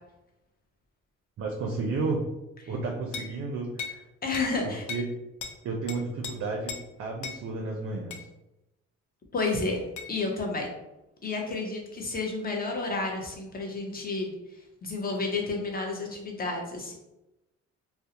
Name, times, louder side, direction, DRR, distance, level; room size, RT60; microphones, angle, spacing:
voice 1, 1.4-2.2 2.7-4.0 4.6-5.0 5.6-8.3, right 3 dB, 50° right, 1 dB, 0.4 m, -32 dB
sound 1, 3.1-3.4 3.8-4.0 4.3-4.5 4.9-5.1 5.4-5.6 5.9-6.3 6.7-6.9 7.2-7.4 8.1-8.3 10.0-10.1, left 6 dB, 75° left, 0.4 m, -37 dB
voice 2, 4.2-4.9 9.3-9.8 10.1-10.7 11.2-17.0, left 3 dB, 30° left, 1 dB, 0.6 m, -31 dB
2.4 x 2.0 x 2.8 m, 0.95 s
cardioid pair, 90°, 30 cm